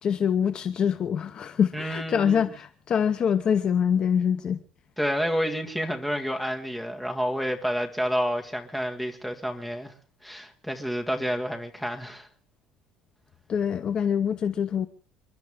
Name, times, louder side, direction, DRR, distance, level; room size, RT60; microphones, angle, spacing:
voice 1, 0.0-4.6 13.5-14.9, left 7 dB, 35° left, 0.8 m, -25 dB
voice 2, 1.7-2.4 5.0-9.9 10.2-12.3, equal, ahead, 1.9 m, -29 dB
29.0 x 12.0 x 3.6 m
cardioid pair, 160°, 3 cm